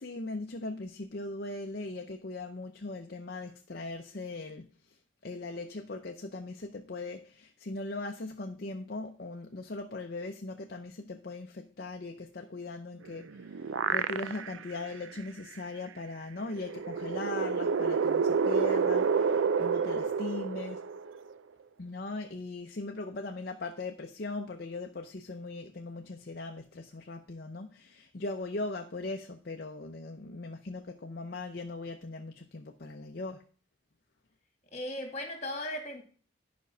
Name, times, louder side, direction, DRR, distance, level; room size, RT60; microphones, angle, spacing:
voice 1, 0.0-4.7 5.2-20.8 21.8-33.4, left 2 dB, 50° left, 0.6 m, -39 dB
sound 1, 13.1-14.7 15.2-15.3 16.5-21.3, right 5 dB, 75° right, 0.4 m, -29 dB
voice 2, 34.7-36.0, left 1 dB, 35° left, 1.9 m, -37 dB
11.0 x 5.2 x 5.5 m
head